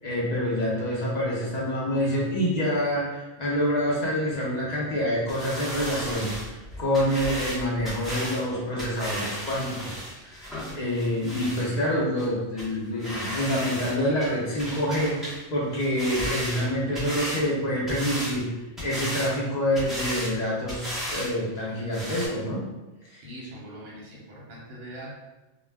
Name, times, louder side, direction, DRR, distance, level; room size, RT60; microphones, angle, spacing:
voice 1, 0.0-15.2 15.5-18.5 18.8-22.6 23.1-23.2, equal, 45° left, -5 dB, 0.5 m, -27 dB
sound 1, 5.3-11.7 12.2-12.3 12.6-12.7 13.0-13.9 14.2-15.4 15.7-17.4 17.9-18.4 18.8-19.3 19.7-20.3 20.7-21.3 21.6-21.7 21.9-22.3, equal, ahead, 0.6 m, -34 dB
voice 2, 23.2-25.1, right 1 dB, 50° right, -5 dB, 0.8 m, -42 dB
2.3 x 2.1 x 3.3 m, 1.1 s
omnidirectional pair, 1.4 m